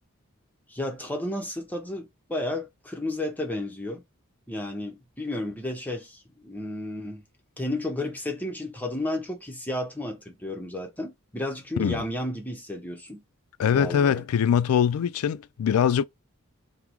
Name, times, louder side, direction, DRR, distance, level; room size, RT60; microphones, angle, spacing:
voice 1, 0.7-4.0 4.5-7.2 7.6-13.2 13.7-14.2, left 1 dB, 10° left, 0.6 m, -32 dB
voice 2, 13.6-16.0, left 8 dB, 80° left, 0.3 m, -23 dB
3.6 x 2.0 x 2.9 m
head